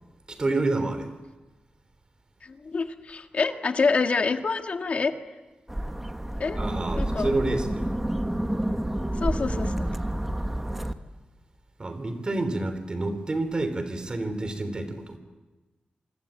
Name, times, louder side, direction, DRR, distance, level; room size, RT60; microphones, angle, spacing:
voice 1, 0.3-1.1 6.5-7.9 11.8-15.2, right 2 dB, 30° right, 9 dB, 3.6 m, -28 dB
voice 2, 2.4-5.1 6.4-6.6 7.0-7.3 9.2-9.7, left 4 dB, 50° left, 6 dB, 1.7 m, -26 dB
sound 1, 5.7-10.9, right 1 dB, 10° right, 1.2 m, -29 dB
27.0 x 25.5 x 8.7 m, 1.2 s
wide cardioid pair, 155°, 3 cm